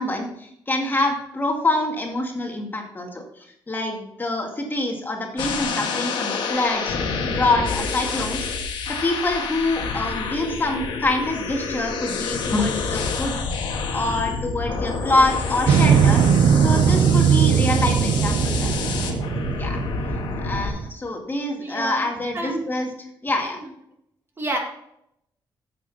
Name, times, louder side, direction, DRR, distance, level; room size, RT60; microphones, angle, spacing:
voice 1, 0.0-7.0 7.3-8.5 8.9-13.4 13.7-16.2 16.5-19.0 19.6-19.8 20.4-22.9 23.2-23.6, left 2 dB, 25° left, 1 dB, 2.1 m, -25 dB
sound 1, 5.4-20.7, left 4 dB, 90° left, 1.6 m, -28 dB
Motorcycle, 15.7-20.9, right 7 dB, 80° right, 0.7 m, -19 dB
voice 2, 21.6-22.1 22.3-22.6 24.4-24.6, right 1 dB, 30° right, 2 dB, 2.1 m, -28 dB
10.0 x 7.7 x 4.1 m, 0.76 s
cardioid pair, 110°, 8 cm